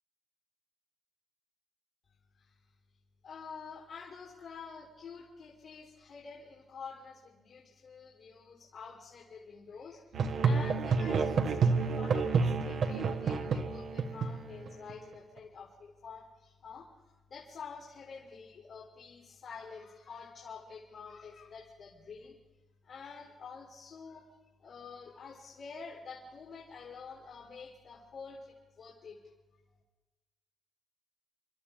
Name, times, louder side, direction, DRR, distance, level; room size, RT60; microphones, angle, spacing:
voice 1, 3.2-10.0 10.4-22.4 22.8-24.3 24.6-29.2, left 5 dB, 60° left, -2 dB, 3.5 m, -48 dB
Musical instrument, 10.1-14.9, right 5 dB, 60° right, 1.3 m, -29 dB
29.0 x 12.0 x 3.6 m, 1.1 s
cardioid pair, 90°, 0 cm